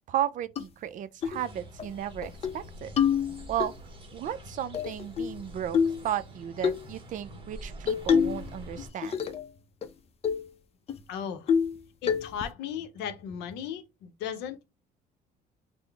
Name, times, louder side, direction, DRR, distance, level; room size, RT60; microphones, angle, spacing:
voice 1, 0.1-2.9 3.5-3.7 4.1-5.8 6.0-9.2, right 11 dB, 50° right, 0.4 m, -34 dB
sound 1, 0.6-0.7 1.2-1.4 1.8-1.9 2.2-2.6 3.0-3.7 4.7-5.4 5.7-6.0 6.6-6.8 7.9-8.5 8.8-9.5 9.8-9.9 10.2-10.5 10.9-11.0 11.5-11.8 12.1-12.5, left 7 dB, 35° left, 0.5 m, -26 dB
sound 2, 1.3-8.9, equal, 30° right, 1.0 m, -46 dB
voice 2, 11.1-11.5 12.0-14.7, left 8 dB, 90° left, 0.6 m, -36 dB
3.8 x 2.0 x 3.3 m
cardioid pair, 110°, 17 cm